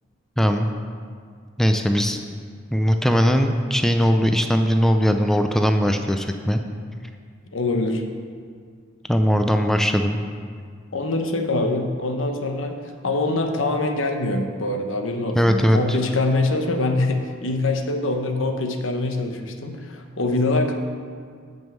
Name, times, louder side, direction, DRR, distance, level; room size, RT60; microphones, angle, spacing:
voice 1, 0.4-0.7 1.6-2.2 2.7-6.6 9.1-10.2 15.3-16.0, equal, ahead, 5 dB, 0.4 m, -19 dB
voice 2, 7.5-8.0 10.9-12.7 13.0-20.7, left 2 dB, 80° left, 5 dB, 1.0 m, -24 dB
9.4 x 5.3 x 7.4 m, 2.1 s
head